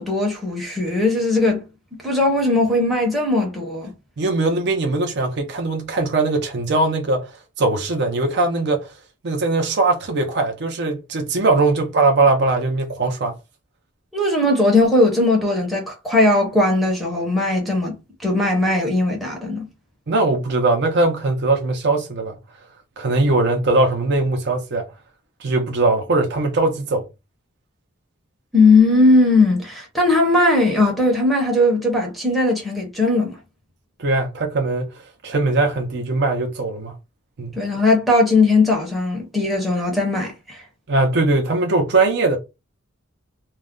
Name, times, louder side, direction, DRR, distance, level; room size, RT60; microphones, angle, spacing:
voice 1, 0.0-1.6 1.9-3.9 14.1-19.7 28.5-33.4 37.6-40.6, left 2 dB, ahead, 0.7 m, -18 dB
voice 2, 4.2-7.3 7.6-8.9 9.2-13.4 20.1-22.4 23.0-24.9 25.4-27.1 34.0-34.9 35.2-37.0 37.4-37.5 40.9-42.4, right 2 dB, 55° right, 0.6 m, -20 dB
2.3 x 2.1 x 3.6 m
head